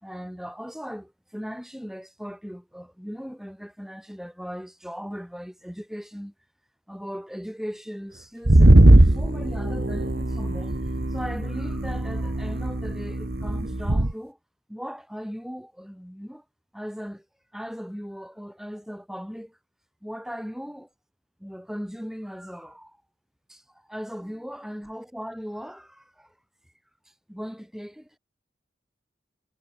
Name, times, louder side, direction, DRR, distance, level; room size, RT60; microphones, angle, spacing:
voice 1, 0.0-6.3 6.9-14.4 14.7-16.4 16.7-17.3 17.5-19.6 20.0-20.9 21.4-23.0 23.5-26.3 27.1-28.2, equal, ahead, 3.8 m, -38 dB
sound 1, 8.5-14.1, right 1 dB, 55° right, 1.4 m, -19 dB
head